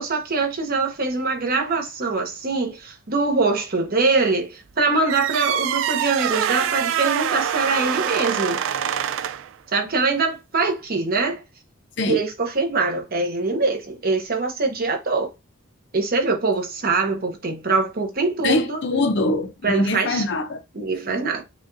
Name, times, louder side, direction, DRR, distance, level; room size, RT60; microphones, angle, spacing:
voice 1, 0.0-8.6 9.7-11.4 12.1-15.3 15.9-18.8 19.6-20.2 20.7-21.4, right 3 dB, 50° right, 0.9 m, -23 dB
sound 1, 5.1-9.5, right 8 dB, 70° right, 0.3 m, -24 dB
voice 2, 18.4-20.6, left 2 dB, 60° left, 0.7 m, -23 dB
4.9 x 2.4 x 2.6 m
head